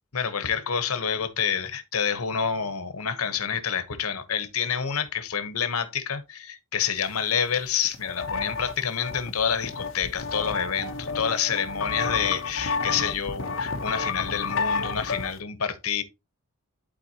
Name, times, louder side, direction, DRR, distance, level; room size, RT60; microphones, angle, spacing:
voice 1, 0.1-16.0, left 7 dB, 90° left, 1.1 m, -28 dB
sound 1, 7.5-7.6 7.8-15.4, left 4 dB, 65° left, 0.8 m, -31 dB
11.5 x 4.1 x 2.9 m
head